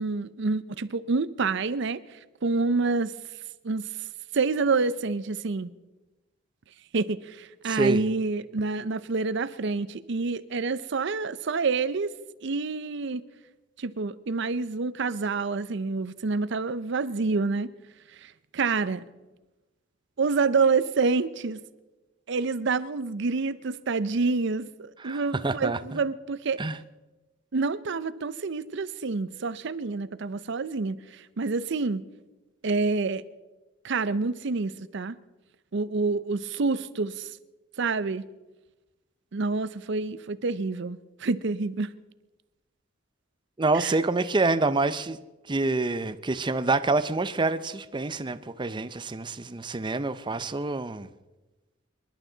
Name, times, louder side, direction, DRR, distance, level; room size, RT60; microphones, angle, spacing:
voice 1, 0.0-2.0 2.4-3.1 3.6-3.9 4.3-5.7 6.9-12.1 12.4-13.2 13.8-17.7 18.2-19.0 20.2-21.6 22.3-26.6 27.5-32.1 32.6-33.2 33.8-35.2 35.7-37.3 37.8-38.3 39.3-41.9 43.7-43.9, right 4 dB, 65° right, 0.6 m, -27 dB
voice 2, 7.6-8.1 25.0-26.0 26.6-26.8 43.6-45.2 45.5-51.1, right 3 dB, 25° right, 0.6 m, -27 dB
26.0 x 11.5 x 3.9 m
head